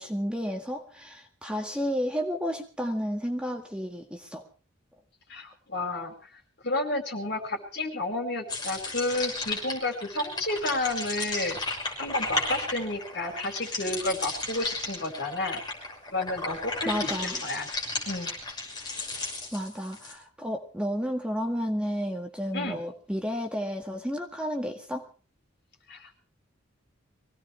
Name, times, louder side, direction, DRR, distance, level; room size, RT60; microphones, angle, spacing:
voice 1, 0.0-4.4 16.9-17.4 19.5-25.1, equal, 5° right, 2 dB, 1.8 m, -31 dB
voice 2, 5.3-11.6 12.0-15.6 16.1-16.9 17.4-17.7 18.1-18.3 22.5-22.8 25.9-26.2, left 2 dB, 55° left, 3 dB, 4.7 m, -31 dB
sound 1, 8.5-20.1, left 2 dB, 20° left, 6.0 m, -34 dB
24.0 x 17.5 x 3.3 m, 0.36 s
head